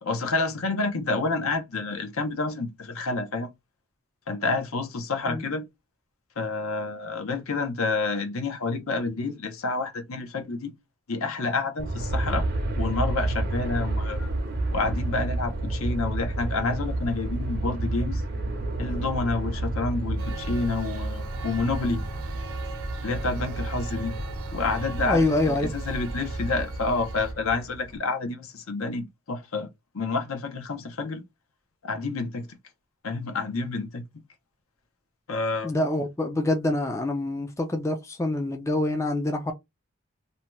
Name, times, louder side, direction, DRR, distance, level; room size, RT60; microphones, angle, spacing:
voice 1, 0.0-3.5 4.3-5.6 6.4-10.7 11.1-12.5 12.8-14.3 14.7-18.2 18.8-22.0 23.0-24.2 24.5-29.7 29.9-31.2 31.8-32.5 33.0-34.0 35.3-35.7, left 3 dB, 75° left, 0.7 m, -29 dB
Aircraft, 11.8-28.0, right 2 dB, 45° right, 0.6 m, -30 dB
Male speech man speaking, 20.2-27.3, right 5 dB, 90° right, 0.7 m, -41 dB
voice 2, 25.1-25.7 35.6-39.5, left 2 dB, 15° left, 0.3 m, -26 dB
2.7 x 2.2 x 3.0 m
head